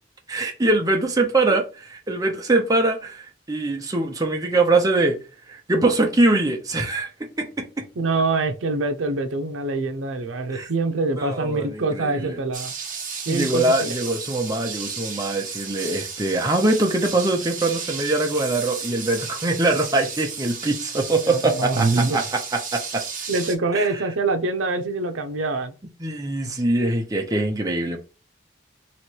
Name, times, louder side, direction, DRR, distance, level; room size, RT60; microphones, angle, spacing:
voice 1, 0.3-5.2 5.5-7.9 10.5-10.7 11.2-12.4 13.3-23.0 23.7-23.9 26.0-28.0, right 2 dB, 20° right, 0.7 m, -23 dB
voice 2, 8.0-12.7 13.3-13.9 21.3-22.2 23.3-25.7, right 3 dB, 80° right, 0.6 m, -24 dB
sound 1, 12.5-23.5, right 5 dB, 45° right, 1.2 m, -33 dB
3.1 x 3.0 x 4.4 m
head